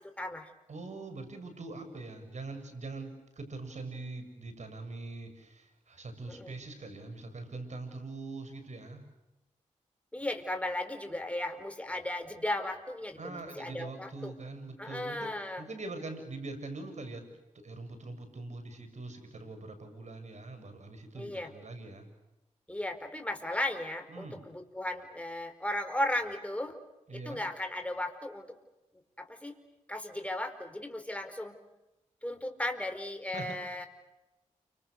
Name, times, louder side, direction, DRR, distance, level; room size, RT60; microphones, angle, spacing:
voice 1, 0.2-0.5 6.3-6.5 10.1-14.3 14.8-15.6 21.2-21.5 22.7-26.8 27.1-28.5 29.2-29.6 29.9-31.6 32.2-33.9, left 1 dB, 10° left, 6 dB, 4.6 m, -36 dB
voice 2, 0.7-9.0 13.2-17.3 17.5-22.1 24.1-24.4 27.1-27.4 33.3-33.9, right 3 dB, 60° right, 7 dB, 7.4 m, -43 dB
29.5 x 26.5 x 6.6 m, 1.0 s
cardioid pair, 55°, 13 cm